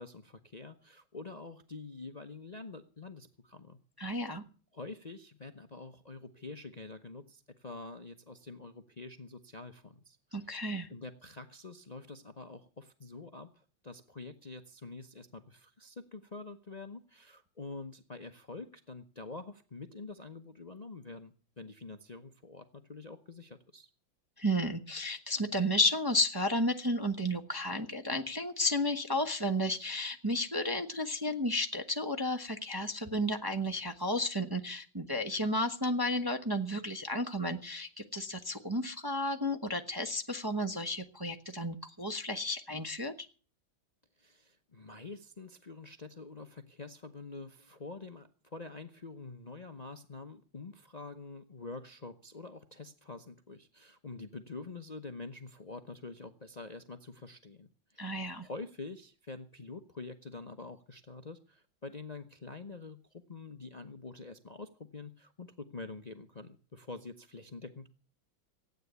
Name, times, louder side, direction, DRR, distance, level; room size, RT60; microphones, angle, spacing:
voice 1, 0.0-3.8 4.7-10.6 10.9-23.9 44.2-63.0 63.3-67.9, left 3 dB, 55° left, 7 dB, 0.4 m, -46 dB
voice 2, 4.0-4.4 10.3-10.9 24.4-43.1 58.0-58.5, left 1 dB, 25° right, 5 dB, 0.5 m, -32 dB
15.0 x 9.4 x 8.1 m, 0.39 s
omnidirectional pair, 2.2 m